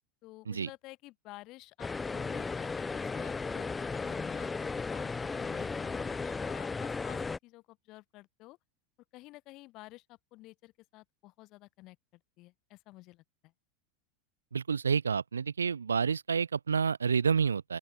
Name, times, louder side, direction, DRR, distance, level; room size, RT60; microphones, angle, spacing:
voice 1, 0.2-8.6 9.1-13.5, left 20 dB, 50° left, 1.8 m, -52 dB
sound 1, 1.8-7.4, left 4 dB, 15° left, 1.0 m, -35 dB
voice 2, 14.5-17.8, right 6 dB, 90° right, 0.3 m, -29 dB
open air
hypercardioid pair, 90°, 0 cm